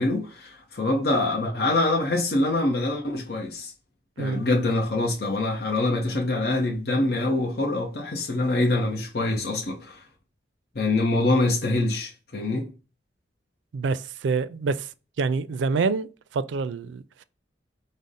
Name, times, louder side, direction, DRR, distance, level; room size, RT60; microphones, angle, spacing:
voice 1, 0.0-3.7 4.2-10.0 10.7-12.7, left 2 dB, 55° left, 0.7 m, -25 dB
voice 2, 13.7-14.9 15.2-17.2, right 4 dB, 80° right, 0.4 m, -27 dB
5.0 x 2.1 x 4.0 m
head